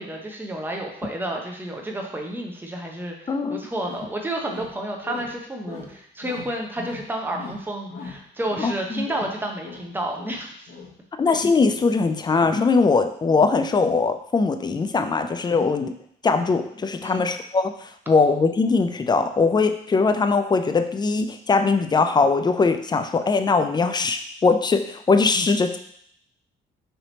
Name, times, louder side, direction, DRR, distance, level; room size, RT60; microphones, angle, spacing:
voice 1, 0.0-10.7 15.5-15.7 17.0-17.3, right 1 dB, 10° right, 1 dB, 0.7 m, -31 dB
sound 1, 3.3-3.4 3.8-4.1 4.4-5.4 5.6-5.9 6.2-7.0 7.3-8.7 9.0-9.3 9.6-10.9 11.2-12.6, left 4 dB, 60° left, 1.2 m, -40 dB
voice 2, 3.3-3.6 8.6-9.0 11.2-15.9 16.2-25.8, left 4 dB, 20° left, 8 dB, 0.3 m, -21 dB
3.3 x 2.8 x 3.9 m, 0.68 s
cardioid pair, 90°, 20 cm